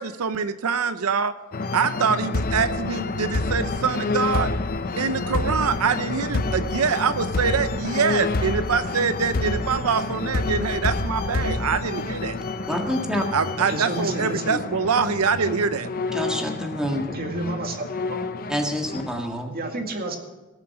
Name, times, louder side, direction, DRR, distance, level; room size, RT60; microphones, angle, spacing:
voice 1, 0.0-1.3 1.7-4.5 5.0-12.4 13.3-15.9, right 6 dB, 85° right, 11 dB, 0.6 m, -24 dB
sound 1, 1.5-19.2, left 3 dB, 45° left, 0.7 m, -28 dB
voice 2, 12.7-13.3 16.1-17.0 18.5-19.6, equal, 5° right, 1 dB, 1.8 m, -27 dB
voice 3, 13.6-14.6 17.1-18.2 19.5-20.2, right 2 dB, 45° right, 3 dB, 2.0 m, -30 dB
18.0 x 7.6 x 6.0 m, 1.1 s
head